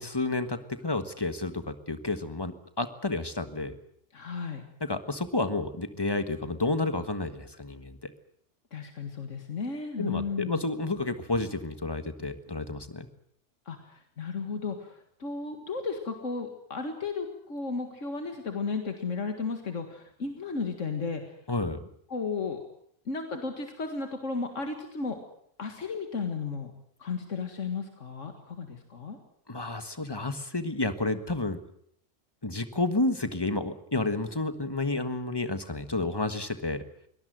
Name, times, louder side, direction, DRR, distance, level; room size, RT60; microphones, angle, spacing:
voice 1, 0.0-3.8 4.8-8.1 10.0-13.1 21.5-21.8 29.5-31.6 32.4-36.8, left 2 dB, 20° left, 10 dB, 1.5 m, -30 dB
voice 2, 4.1-4.6 8.7-10.6 13.7-21.3 22.1-22.6 23.1-25.2 25.6-26.7 27.0-29.2, left 4 dB, 90° left, 5 dB, 2.2 m, -34 dB
23.5 x 18.0 x 7.9 m, 0.68 s
omnidirectional pair, 1.2 m